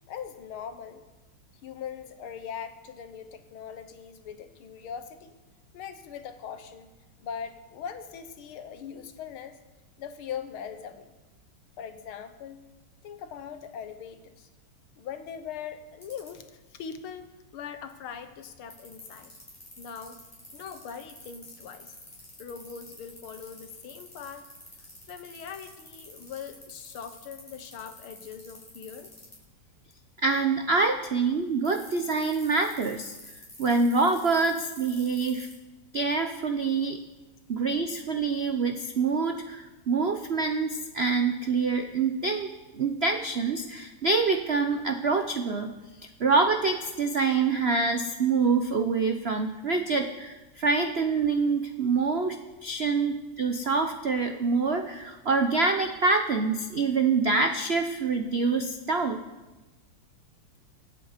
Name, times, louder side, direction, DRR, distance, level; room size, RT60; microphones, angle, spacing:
voice 1, 0.1-1.0 1.6-5.3 5.7-6.9 7.2-9.6 10.0-11.1 11.8-12.6 13.0-14.5 15.0-19.3 19.8-20.2 20.5-22.0 22.4-24.5 25.1-29.1, left 7 dB, 80° left, 9 dB, 1.9 m, -41 dB
sound 1, 16.0-16.3 18.7-29.3 31.6-35.6, left 1 dB, 10° left, 6.4 m, -48 dB
voice 2, 30.2-33.1 33.6-35.5 35.9-37.0 37.5-42.5 42.8-45.7 46.2-59.2, right 4 dB, 70° right, 6 dB, 0.6 m, -26 dB
25.0 x 8.3 x 5.1 m, 1.1 s
omnidirectional pair, 2.3 m